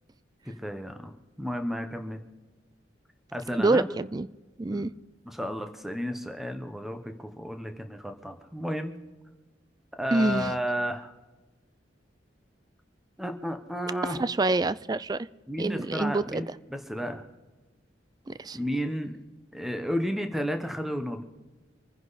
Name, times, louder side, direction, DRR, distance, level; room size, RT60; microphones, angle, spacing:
voice 1, 0.4-2.2 3.3-3.9 4.7-4.9 5.2-9.0 10.0-11.1 13.2-14.2 15.5-17.3 18.5-19.2 19.5-21.2, equal, ahead, 6 dB, 1.1 m, -32 dB
voice 2, 3.6-4.3 4.6-4.9 10.1-10.5 14.1-15.3 15.6-16.4 18.3-18.6, right 2 dB, 20° right, 17 dB, 0.4 m, -26 dB
25.0 x 10.5 x 4.1 m, 1.2 s
head